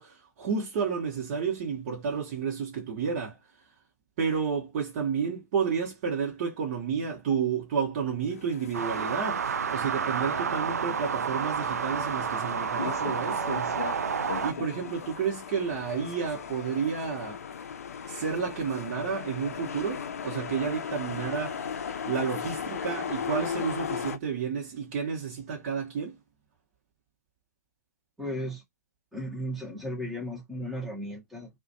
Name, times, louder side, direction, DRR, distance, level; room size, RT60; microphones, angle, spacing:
voice 1, 0.0-3.4 4.2-13.8 14.4-17.4 18.1-21.6 22.1-26.1, right 6 dB, 40° right, 0.9 m, -31 dB
sound 1, 8.3-24.2, left 7 dB, 60° left, 0.4 m, -37 dB
sound 2, 8.7-14.5, right 7 dB, 70° right, 0.4 m, -30 dB
voice 2, 28.2-28.6 29.1-31.5, equal, ahead, 0.7 m, -35 dB
2.4 x 2.1 x 2.6 m
figure-of-eight pair, 110°, 9 cm